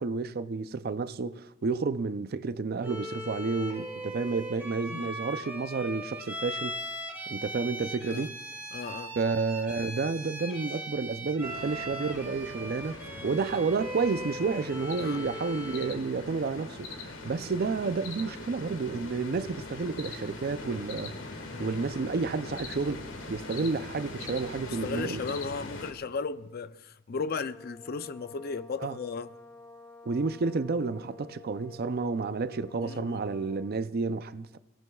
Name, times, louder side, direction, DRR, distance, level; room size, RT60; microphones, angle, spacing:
voice 1, 0.0-6.8 7.3-8.4 9.2-13.0 13.2-21.1 21.6-25.2 28.8-29.0 30.0-34.6, right 4 dB, 50° right, 0.5 m, -31 dB
Bowed string instrument, 2.8-16.0, equal, 10° right, 2.2 m, -39 dB
voice 2, 8.7-9.2 15.0-15.2 21.5-21.8 24.6-29.3 32.8-33.2, left 4 dB, 50° left, 0.5 m, -36 dB
sound 1, 11.4-25.9, left 2 dB, 80° left, 1.6 m, -41 dB
sound 2, 27.3-33.9, left 3 dB, 15° left, 1.2 m, -50 dB
28.5 x 17.5 x 2.3 m
head